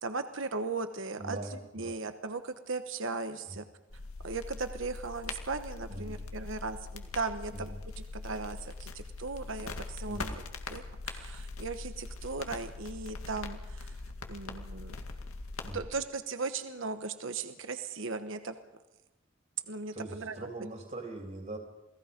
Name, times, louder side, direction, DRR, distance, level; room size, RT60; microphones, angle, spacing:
voice 1, 0.0-1.4 1.7-3.6 4.2-10.3 10.7-13.9 14.3-15.0 15.7-18.5 19.7-20.5, right 4 dB, 60° right, 9 dB, 1.2 m, -37 dB
voice 2, 1.2-2.0 3.5-3.6 5.9-6.2 7.5-7.8 10.1-10.4 15.6-15.8 19.9-21.6, right 1 dB, 35° right, 2 dB, 3.1 m, -41 dB
sound 1, 3.9-15.8, left 3 dB, 85° left, 2.1 m, -42 dB
28.0 x 19.0 x 5.2 m, 1.0 s
head